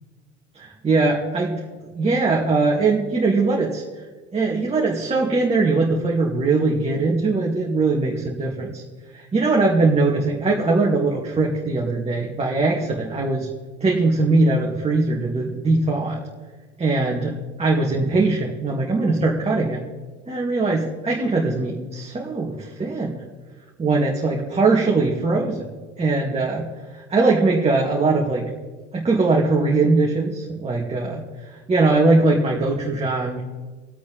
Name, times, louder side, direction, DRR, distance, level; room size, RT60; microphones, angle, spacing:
voice 1, 0.6-1.5 1.9-3.8 4.3-8.8 9.1-13.5 13.8-16.2 16.8-17.3 17.6-19.8 20.3-23.2 23.8-25.7 26.0-26.6 26.9-28.4 28.9-31.1 31.7-33.4, right 3 dB, 15° right, -3 dB, 2.1 m, -21 dB
25.0 x 8.4 x 4.1 m, 1.4 s
figure-of-eight pair, 70°, 35 cm